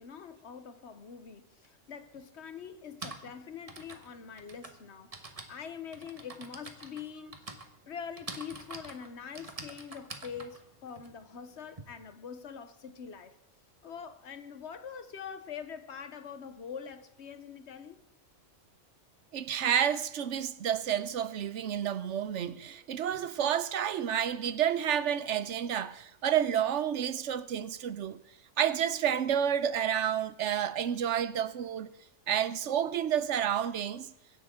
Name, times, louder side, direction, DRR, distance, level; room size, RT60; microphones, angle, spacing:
voice 1, 0.0-5.1 5.5-7.6 7.9-13.4 13.8-18.0, left 7 dB, 60° left, 1.2 m, -44 dB
Typing, 1.6-1.7 2.7-11.8, right 3 dB, 30° right, 1.3 m, -46 dB
voice 2, 19.3-28.2 28.6-31.9 32.3-34.1, right 9 dB, 70° right, 1.0 m, -30 dB
23.5 x 10.5 x 3.7 m
omnidirectional pair, 1.3 m